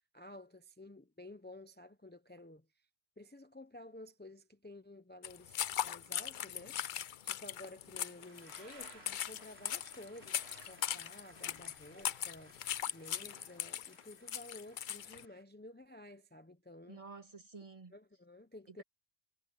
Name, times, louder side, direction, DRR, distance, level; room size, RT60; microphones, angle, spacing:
voice 1, 0.1-2.9 3.2-17.0 17.9-18.8, left 1 dB, 10° left, 0.8 m, -53 dB
sound 1, 5.2-15.2, left 10 dB, 60° left, 0.6 m, -39 dB
sound 2, 8.0-11.2 11.6-12.9, right 3 dB, 75° right, 2.9 m, -60 dB
sound 3, 8.2-15.4, equal, 10° right, 3.8 m, -62 dB
voice 2, 16.9-18.0 18.7-18.8, right 4 dB, 35° right, 1.9 m, -51 dB
omnidirectional pair, 1.1 m